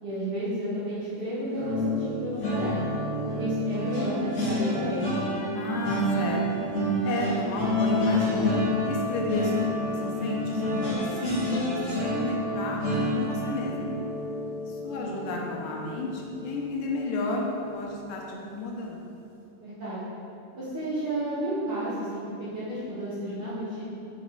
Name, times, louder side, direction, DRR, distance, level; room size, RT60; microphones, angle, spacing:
voice 1, 0.0-2.9 3.4-5.2 14.8-15.2 19.6-20.0 20.5-22.2 22.5-23.9, right 1 dB, 55° right, -11 dB, 1.6 m, -32 dB
sound 1, 1.5-16.7 17.1-17.3 17.6-17.8, left 1 dB, 40° left, 1.2 m, -29 dB
voice 2, 5.5-6.7 7.0-12.8 13.1-13.9 14.5-19.0, left 2 dB, 80° left, -1 dB, 2.2 m, -32 dB
5.9 x 5.1 x 4.0 m, 2.6 s
omnidirectional pair, 3.8 m